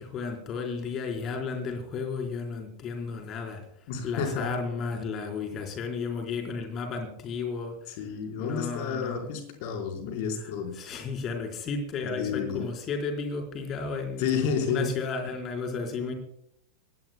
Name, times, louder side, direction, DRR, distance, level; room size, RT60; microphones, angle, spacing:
voice 1, 0.0-3.6 4.0-7.8 8.4-9.3 10.4-16.1, left 4 dB, 30° left, 4 dB, 4.1 m, -33 dB
voice 2, 3.9-4.5 7.9-10.7 12.2-12.6 14.2-14.9, left 6 dB, 50° left, 2 dB, 4.2 m, -30 dB
23.5 x 17.5 x 2.2 m, 0.71 s
figure-of-eight pair, 90°, 0 cm